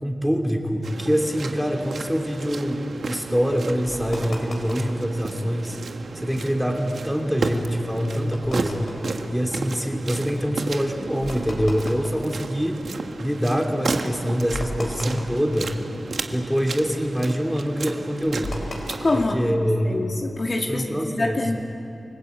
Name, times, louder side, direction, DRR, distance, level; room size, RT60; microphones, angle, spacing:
voice 1, 0.0-5.8 6.1-8.9 9.3-12.9 13.2-15.8 16.3-18.6 19.1-20.1 20.7-21.4, equal, ahead, 3 dB, 2.8 m, -25 dB
sound 1, 0.8-19.3, right 4 dB, 75° right, 1.5 m, -33 dB
sound 2, 3.2-5.1 5.5-5.6 5.8-6.1 6.6-13.3 13.7-13.8 14.1-16.2 16.5-19.5, left 1 dB, 65° left, 4.5 m, -38 dB
voice 2, 19.0-21.6, left 2 dB, 45° left, 1 dB, 2.4 m, -26 dB
28.5 x 19.0 x 8.4 m, 2.7 s
wide cardioid pair, 80°, 0 cm